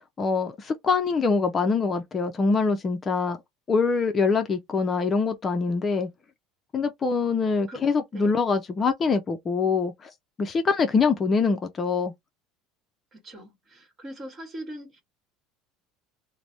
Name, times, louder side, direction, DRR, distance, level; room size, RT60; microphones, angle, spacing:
voice 1, 0.2-3.4 3.7-6.1 6.7-10.1 10.4-12.1, left 4 dB, 25° left, 0.4 m, -24 dB
voice 2, 13.1-15.0, equal, 30° right, 1.3 m, -41 dB
3.2 x 2.0 x 2.6 m
supercardioid pair, 130°, 0 cm